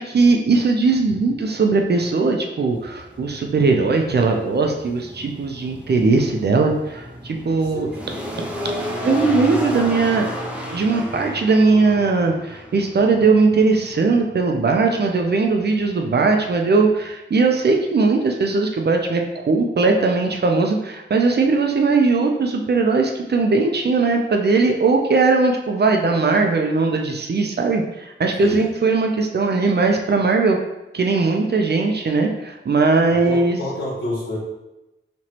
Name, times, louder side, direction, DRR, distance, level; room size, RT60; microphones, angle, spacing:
voice 1, 0.0-7.9 9.0-10.3 10.7-30.6 30.9-33.6, right 3 dB, 50° right, 3 dB, 0.5 m, -19 dB
sound 1, 2.7-17.1, equal, 5° right, 0.6 m, -33 dB
voice 2, 7.6-8.0 28.4-28.7 33.1-34.4, left 1 dB, 75° left, -8 dB, 1.0 m, -29 dB
4.4 x 3.0 x 2.9 m, 0.96 s
wide cardioid pair, 85°, 21 cm